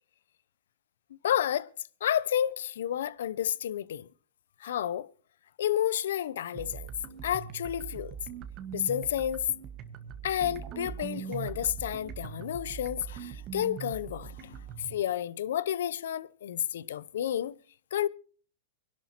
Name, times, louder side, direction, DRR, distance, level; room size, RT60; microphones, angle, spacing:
voice 1, 1.2-1.7 2.0-4.1 4.6-5.1 5.6-6.9 7.2-8.1 8.7-9.4 10.2-14.6 14.9-17.6 17.9-18.1, left 10 dB, 70° left, 0.6 m, -30 dB
sound 1, 6.5-15.0, right 8 dB, 35° right, 1.5 m, -41 dB
25.0 x 11.5 x 3.0 m
hypercardioid pair, 110°, 0 cm